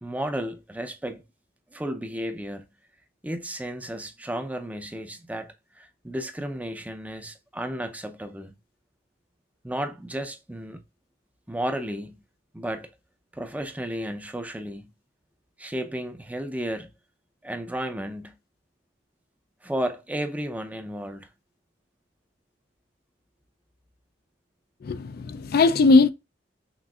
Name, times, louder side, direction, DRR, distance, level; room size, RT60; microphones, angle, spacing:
voice 1, 0.0-1.2 1.7-2.6 3.2-8.5 9.6-10.8 11.5-12.1 12.5-12.9 13.3-14.9 15.6-16.9 17.4-18.3 19.6-21.3, right 1 dB, 10° right, 0.5 m, -33 dB
voice 2, 24.9-26.1, left 3 dB, 55° left, 0.4 m, -19 dB
6.0 x 2.5 x 2.3 m
head